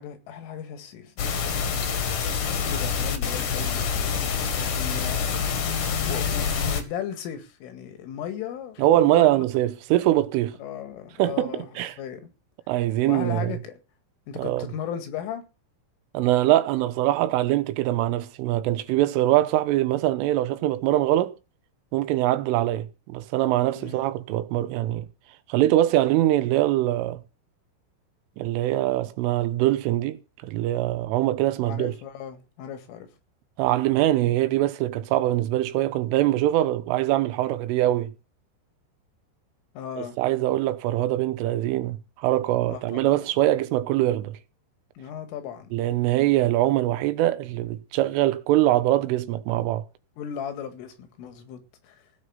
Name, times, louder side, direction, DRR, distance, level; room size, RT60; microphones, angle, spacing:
voice 1, 0.0-2.2 2.7-5.5 6.1-9.5 10.6-11.7 12.0-12.3 13.1-13.8 14.3-15.5 23.8-24.1 31.6-33.1 39.7-40.2 42.7-43.2 45.0-45.7 50.2-52.0, left 8 dB, 85° left, 4.6 m, -37 dB
sound 1, 1.2-6.8, left 6 dB, 55° left, 2.6 m, -26 dB
voice 2, 8.8-10.6 11.2-12.0 12.7-13.6 14.4-14.7 16.2-21.4 21.9-25.1 25.5-27.2 28.4-31.9 33.6-38.1 40.0-44.4 45.7-49.8, right 14 dB, 85° right, 3.6 m, -23 dB
16.5 x 6.5 x 7.8 m
omnidirectional pair, 5.6 m